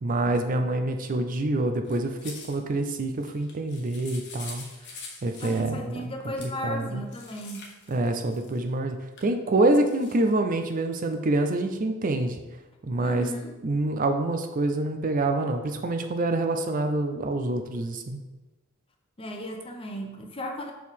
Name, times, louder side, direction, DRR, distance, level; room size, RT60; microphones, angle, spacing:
voice 1, 0.0-4.6 5.2-6.1 6.4-7.0 7.9-12.4 12.8-13.3 13.6-18.2, right 2 dB, 40° right, 6 dB, 0.4 m, -26 dB
sound 1, 1.8-2.6 3.1-5.7 6.4-6.5 7.0-8.7 9.2-9.3 9.8-10.3, left 4 dB, 55° left, 1.2 m, -44 dB
voice 2, 5.4-7.7 13.0-13.5 19.2-20.7, equal, 25° left, 3 dB, 0.7 m, -35 dB
6.3 x 4.5 x 3.6 m, 1.1 s
head